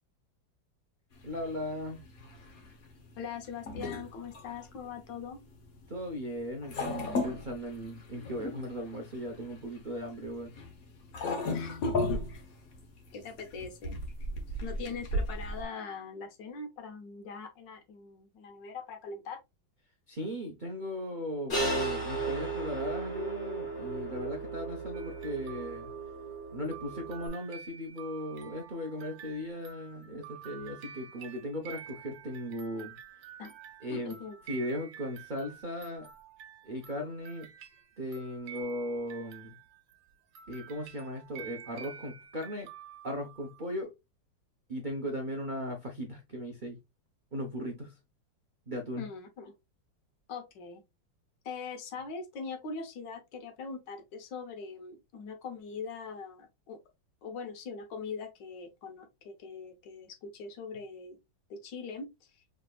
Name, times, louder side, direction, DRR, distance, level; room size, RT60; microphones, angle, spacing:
sound 1, 1.1-15.6, left 2 dB, 55° left, 1.3 m, -37 dB
voice 1, 1.2-2.0 5.9-10.5 20.1-25.9 26.5-33.0 33.8-34.2 34.5-36.1 36.6-37.5 38.0-39.5 40.5-42.7 43.0-43.9 44.7-46.8 47.3-48.0 48.7-49.1, equal, 60° right, 0.5 m, -37 dB
voice 2, 3.2-5.4 11.5-12.4 13.1-14.0 14.6-19.4 33.4-33.5 33.9-34.4 49.0-49.5 50.3-50.8 51.4-56.8 57.2-61.2 61.5-62.4, left 4 dB, 70° left, 1.5 m, -41 dB
sound 2, 21.5-27.3, right 3 dB, 35° left, 1.5 m, -35 dB
sound 3, 24.9-40.0 40.3-43.8, right 8 dB, 80° right, 1.5 m, -49 dB
5.0 x 3.3 x 2.3 m
omnidirectional pair, 2.1 m